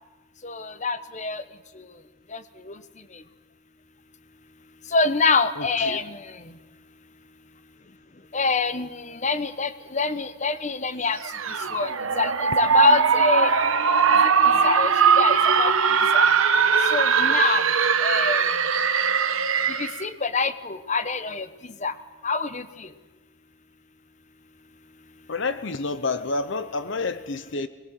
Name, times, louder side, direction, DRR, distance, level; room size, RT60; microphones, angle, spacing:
voice 1, 0.4-1.4 1.8-1.9 2.3-2.4 2.7-2.8 4.9-6.4 8.3-11.2 11.7-13.5 14.6-15.7 16.1-16.3 16.9-17.7 18.0-18.4 19.8-21.5 21.8-21.9 22.2-22.9, left 4 dB, 35° left, 12 dB, 1.0 m, -25 dB
voice 2, 5.6-6.0 25.3-27.7, left 3 dB, 60° left, 13 dB, 0.8 m, -29 dB
sound 1, 11.2-20.0, right 6 dB, 80° right, 1.3 m, -20 dB
22.5 x 20.5 x 7.8 m, 1.2 s
head